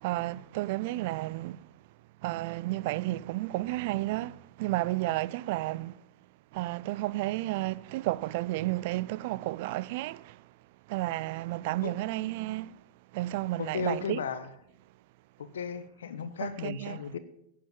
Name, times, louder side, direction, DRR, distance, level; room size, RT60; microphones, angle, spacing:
voice 1, 0.0-1.7 2.2-6.0 6.5-10.5 10.9-12.8 13.1-14.2 16.4-17.0, right 18 dB, 60° right, 0.4 m, -32 dB
voice 2, 13.6-14.5 15.4-17.2, left 6 dB, 80° left, 1.2 m, -35 dB
10.5 x 8.6 x 7.4 m
hypercardioid pair, 105°, 0 cm